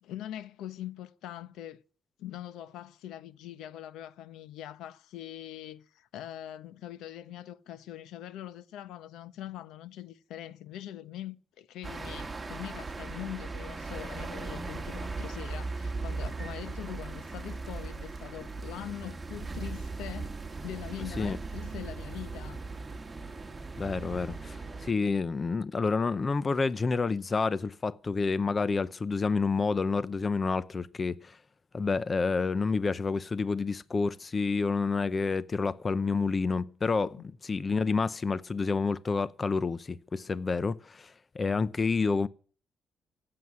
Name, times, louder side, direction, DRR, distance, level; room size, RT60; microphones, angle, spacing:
voice 1, 0.0-1.8 2.2-20.4 20.6-22.6, left 12 dB, 85° left, 1.0 m, -42 dB
sound 1, 11.8-24.9, right 3 dB, 20° right, 1.9 m, -38 dB
voice 2, 23.8-31.4 31.7-42.3, left 4 dB, 35° left, 0.7 m, -29 dB
16.0 x 7.8 x 9.6 m
cardioid pair, 90°, 0 cm